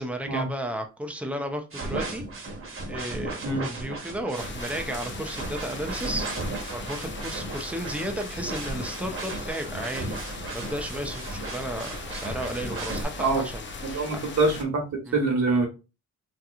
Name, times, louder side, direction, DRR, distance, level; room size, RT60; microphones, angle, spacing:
voice 1, 0.0-6.3 6.7-14.1 15.1-15.2, right 1 dB, 5° right, 4 dB, 0.5 m, -34 dB
sound 1, 1.7-13.0, right 2 dB, 45° right, 1.1 m, -35 dB
sound 2, 4.3-14.6, left 3 dB, 40° left, 0.6 m, -39 dB
voice 2, 13.8-14.8 15.1-15.7, right 3 dB, 65° right, 2 dB, 1.2 m, -24 dB
3.7 x 2.9 x 2.4 m, 0.30 s
wide cardioid pair, 125°, 30 cm